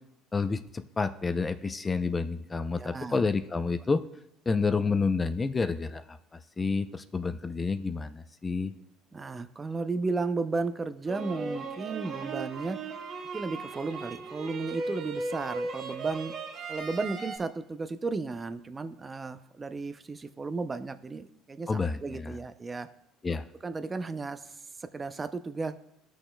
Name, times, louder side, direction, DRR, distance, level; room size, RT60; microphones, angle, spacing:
voice 1, 0.3-4.0 4.5-8.7 21.7-22.4 23.2-23.4, left 4 dB, 25° left, 10 dB, 0.5 m, -29 dB
voice 2, 2.8-3.2 9.1-12.8 13.3-16.3 16.7-22.9 23.6-25.7, right 3 dB, 25° right, 10 dB, 0.6 m, -34 dB
sound 1, 11.1-17.4, right 3 dB, 50° right, 1.4 m, -37 dB
15.0 x 6.2 x 2.3 m, 0.79 s
supercardioid pair, 80°, 0 cm